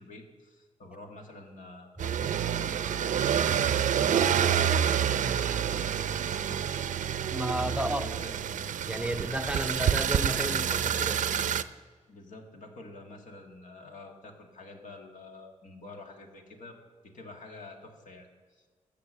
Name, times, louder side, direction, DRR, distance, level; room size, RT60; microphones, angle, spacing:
voice 1, 0.0-3.5 4.0-7.0 7.3-8.7 12.1-16.8 17.0-18.7, left 2 dB, 75° left, 2 dB, 1.8 m, -48 dB
sound 1, 2.0-11.6, right 9 dB, 70° right, 0.5 m, -28 dB
voice 2, 7.3-8.1 8.9-11.2, right 1 dB, 10° right, 8 dB, 0.5 m, -32 dB
13.5 x 6.1 x 7.4 m, 1.5 s
wide cardioid pair, 110°, 13 cm